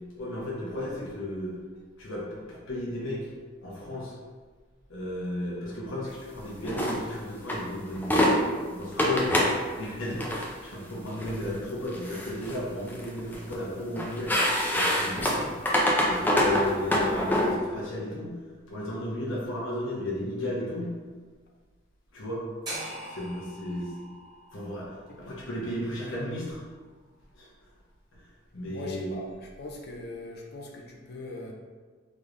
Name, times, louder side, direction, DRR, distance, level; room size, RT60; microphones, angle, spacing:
voice 1, 0.2-1.5 2.0-3.3 3.6-4.1 4.9-9.4 9.8-14.4 14.7-15.5 16.0-18.3 18.7-20.9 22.1-22.4 23.1-23.9 24.5-24.9 25.2-26.6 27.3-27.5 28.5-29.1, left 1 dB, 85° left, -5 dB, 1.0 m, -34 dB
sound 1, 6.6-7.0 7.5-7.6 8.0-8.3 9.0-9.6 10.1-10.5 11.2-11.4 11.9-12.6 12.9-13.6 14.0-17.5, left 1 dB, 10° left, 0.4 m, -25 dB
sound 2, 22.6-26.8, right 1 dB, 20° right, 1.3 m, -42 dB
voice 2, 28.7-31.5, left 2 dB, 55° left, 0 dB, 0.5 m, -41 dB
3.6 x 3.2 x 2.5 m, 1.4 s
head